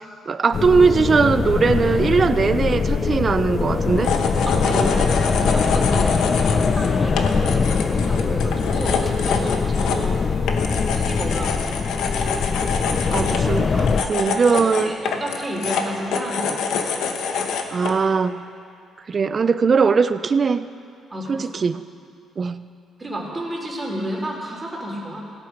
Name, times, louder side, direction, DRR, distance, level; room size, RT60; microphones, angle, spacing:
voice 1, 0.3-4.2 13.1-15.0 17.7-18.4 19.1-20.7 21.3-21.8 22.4-22.6, right 5 dB, 40° right, 13 dB, 0.5 m, -20 dB
sound 1, 0.5-14.0, left 5 dB, 45° left, 0.6 m, -22 dB
sound 2, 4.0-18.0, left 5 dB, 80° left, 1.1 m, -26 dB
voice 2, 4.5-6.2 6.5-10.3 10.9-11.8 14.0-14.1 14.5-16.8 21.1-21.7 23.0-25.2, right 1 dB, 20° right, -1 dB, 2.9 m, -31 dB
17.0 x 8.4 x 6.0 m, 2.5 s
cardioid pair, 90°, 0 cm